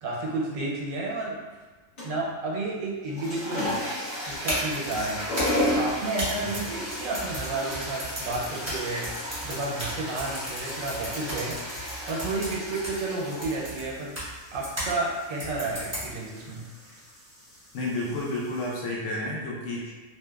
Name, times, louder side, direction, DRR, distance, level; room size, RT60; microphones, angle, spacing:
voice 1, 0.0-1.4 2.0-3.8 4.3-5.2 5.6-9.1 9.4-11.6 12.1-14.2 14.5-16.7, right 2 dB, 85° right, -3 dB, 1.0 m, -31 dB
sound 1, 2.0-2.3 3.0-18.8, left 1 dB, 45° left, 0.9 m, -34 dB
sound 2, 4.3-15.0 15.4-16.4, equal, 15° right, 0.6 m, -35 dB
voice 2, 17.7-19.9, left 2 dB, 70° left, -4 dB, 0.8 m, -31 dB
2.9 x 2.1 x 2.2 m, 1.2 s
omnidirectional pair, 1.4 m